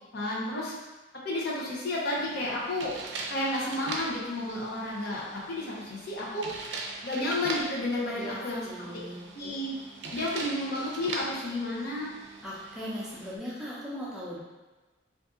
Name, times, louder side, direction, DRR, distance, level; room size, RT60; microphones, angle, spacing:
voice 1, 0.1-0.7 1.2-2.9 3.3-6.5 7.0-8.6 9.3-9.7 10.1-12.1, left 1 dB, 60° left, -5 dB, 0.7 m, -31 dB
sound 1, 2.1-13.4, right 3 dB, 80° right, 0.4 m, -41 dB
voice 2, 8.1-9.2 12.4-14.4, equal, 5° right, -8 dB, 0.6 m, -39 dB
2.6 x 2.5 x 3.6 m, 1.2 s
head